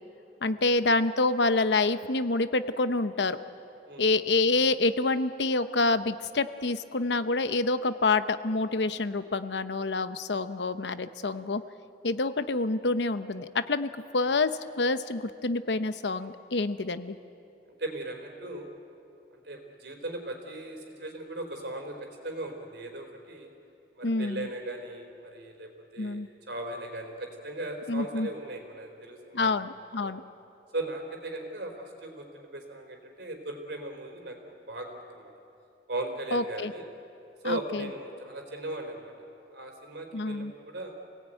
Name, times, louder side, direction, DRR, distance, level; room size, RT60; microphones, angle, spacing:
voice 1, 0.4-3.4 4.0-11.6 12.0-14.5 14.8-17.2 24.0-24.5 26.0-26.3 27.9-28.3 29.3-30.2 36.3-36.7 37.4-37.9 40.1-40.5, left 3 dB, 80° left, 11 dB, 0.9 m, -27 dB
voice 2, 17.8-18.7 19.3-22.0 22.2-23.5 24.0-29.6 30.0-30.1 30.7-35.3 35.9-36.9 37.4-39.1 39.5-40.9, right 1 dB, 70° right, 4 dB, 3.9 m, -38 dB
27.5 x 18.0 x 9.1 m, 2.7 s
head